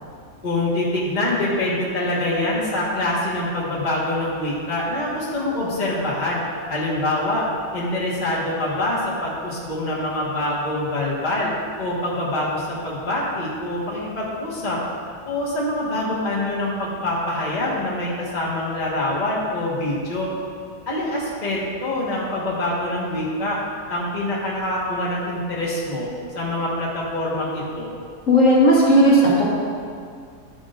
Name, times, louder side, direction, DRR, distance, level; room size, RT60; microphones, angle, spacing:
voice 1, 0.4-6.4 6.7-7.4 7.7-11.5 11.8-14.8 15.2-20.3 20.9-23.6 23.9-26.1 26.3-27.9, left 1 dB, 25° left, -6 dB, 1.5 m, -25 dB
voice 2, 28.3-29.4, equal, 50° left, -6 dB, 1.8 m, -14 dB
12.0 x 8.4 x 2.6 m, 2.2 s
omnidirectional pair, 1.8 m